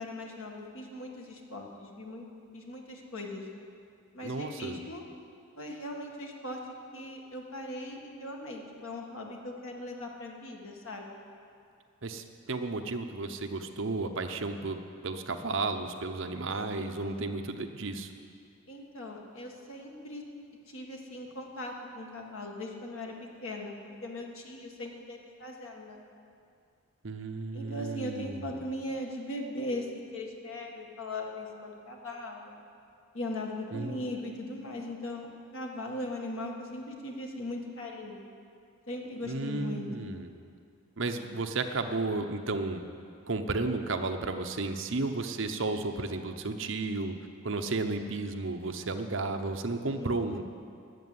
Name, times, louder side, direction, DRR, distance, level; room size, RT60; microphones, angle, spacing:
voice 1, 0.0-2.3 2.5-3.5 4.1-5.0 5.6-6.6 6.9-11.1 16.8-17.3 18.7-20.2 20.7-23.2 23.4-23.7 24.0-26.0 27.5-32.6 33.1-35.3 35.5-38.2 38.9-40.2 50.0-50.4, left 1 dB, 65° left, 0 dB, 1.9 m, -39 dB
voice 2, 4.2-4.8 12.0-18.1 27.0-28.6 33.7-34.0 39.3-40.3 41.0-42.8 43.3-47.1 47.4-50.4, right 3 dB, 60° right, 6 dB, 0.8 m, -33 dB
13.0 x 7.7 x 9.7 m, 2.4 s
head